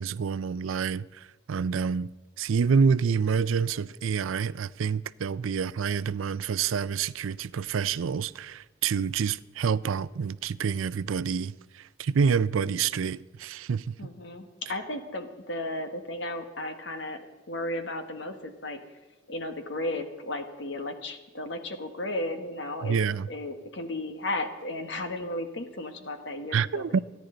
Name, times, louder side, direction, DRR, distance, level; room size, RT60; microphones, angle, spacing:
voice 1, 0.0-2.1 2.4-14.0 22.8-23.3 26.5-27.0, right 6 dB, 85° right, 0.4 m, -27 dB
voice 2, 14.0-18.8 19.3-23.0 23.3-27.0, left 1 dB, 65° left, 1.5 m, -34 dB
27.5 x 10.0 x 3.9 m
head